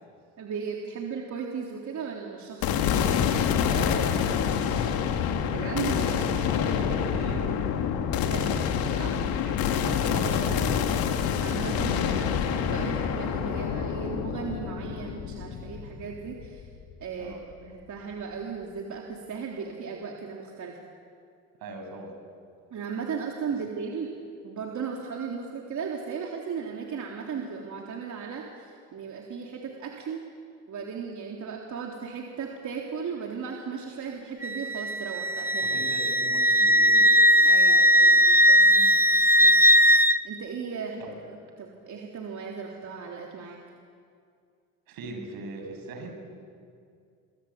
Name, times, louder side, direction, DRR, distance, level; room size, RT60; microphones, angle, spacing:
voice 1, 0.4-3.2 5.5-6.2 8.1-8.6 9.0-9.2 11.4-16.7 17.0-17.3 17.6-20.8 22.7-24.1 24.4-30.2 30.7-35.8 37.5-38.6 39.4-39.6 40.2-41.0 41.6-43.6, right 6 dB, 50° right, 0 dB, 3.5 m, -36 dB
sound 1, 2.6-16.9, left 8 dB, 75° left, 2.6 m, -27 dB
voice 2, 3.7-4.3 5.9-7.7 9.4-11.1 17.2-17.4 21.6-22.1 35.6-37.1 38.6-38.9 41.0-41.1 44.9-46.2, right 2 dB, 75° right, 3 dB, 7.6 m, -40 dB
Wind instrument woodwind instrument, 34.4-40.2, equal, 5° right, 1.0 m, -19 dB
27.5 x 23.0 x 8.8 m, 2.3 s
supercardioid pair, 75°, 36 cm